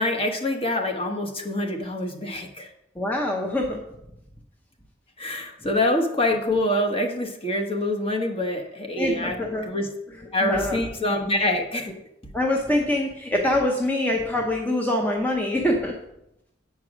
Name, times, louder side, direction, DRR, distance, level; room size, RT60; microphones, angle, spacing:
voice 1, 0.0-2.7 5.2-9.4 9.7-9.9 10.3-11.9, left 1 dB, 30° left, 3 dB, 1.2 m, -25 dB
voice 2, 3.0-3.8 9.0-9.7 10.4-10.8 11.9-12.0 12.3-15.9, left 1 dB, 10° left, 0 dB, 0.8 m, -24 dB
8.8 x 4.7 x 6.1 m, 0.82 s
head